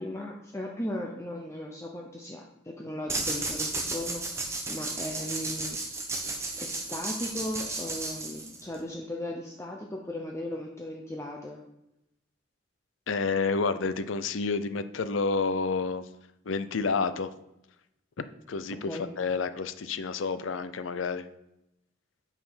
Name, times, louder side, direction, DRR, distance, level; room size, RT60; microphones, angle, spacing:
voice 1, 0.0-4.2 4.7-5.8 6.6-11.6 18.8-19.1, left 1 dB, 15° left, 0 dB, 0.7 m, -37 dB
sound 1, 3.1-8.8, right 3 dB, 15° right, 1.1 m, -33 dB
voice 2, 13.1-16.1 16.4-17.3 18.2-18.9 19.2-21.3, left 4 dB, 85° left, 12 dB, 0.6 m, -29 dB
8.6 x 5.0 x 5.6 m, 0.87 s
head